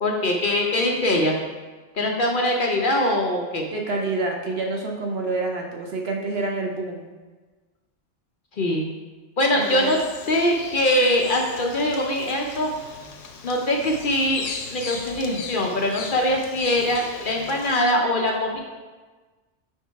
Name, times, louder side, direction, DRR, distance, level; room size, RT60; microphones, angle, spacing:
voice 1, 0.0-1.4 1.9-3.6 8.6-8.8 9.4-10.0 10.3-12.7 13.4-18.6, left 1 dB, 50° left, 1 dB, 0.7 m, -22 dB
voice 2, 3.7-7.1 9.5-10.0, right 3 dB, 60° right, 1 dB, 1.0 m, -27 dB
Bird vocalization bird call bird song, 9.6-17.8, left 4 dB, 90° left, 1.0 m, -38 dB
4.9 x 4.4 x 4.6 m, 1.3 s
omnidirectional pair, 1.2 m